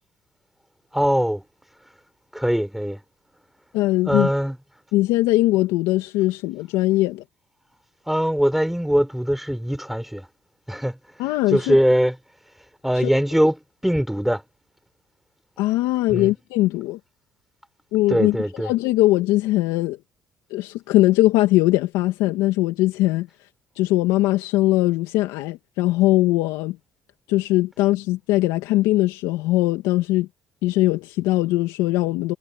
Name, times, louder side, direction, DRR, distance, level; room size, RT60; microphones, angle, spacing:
voice 1, 0.9-1.4 2.3-3.0 4.1-4.6 8.1-10.2 10.7-10.9 11.5-12.1 12.8-13.5 13.8-14.4 16.1-16.3 18.1-18.7, equal, 5° right, 3.8 m, -21 dB
voice 2, 3.7-4.3 4.9-7.2 11.2-11.8 13.0-13.1 15.6-17.0 17.9-18.4 18.6-20.0 20.5-23.3 23.8-26.8 27.3-30.3 30.6-32.3, left 17 dB, 85° left, 2.1 m, -20 dB
supercardioid pair, 70°, 7 cm